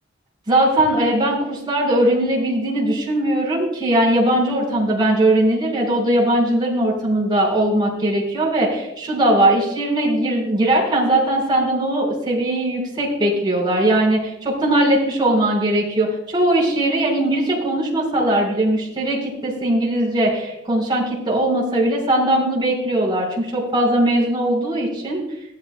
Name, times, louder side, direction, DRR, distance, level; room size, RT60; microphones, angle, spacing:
voice 1, 0.5-25.2, right 1 dB, 25° right, -3 dB, 4.7 m, -19 dB
16.5 x 13.5 x 2.2 m, 0.83 s
head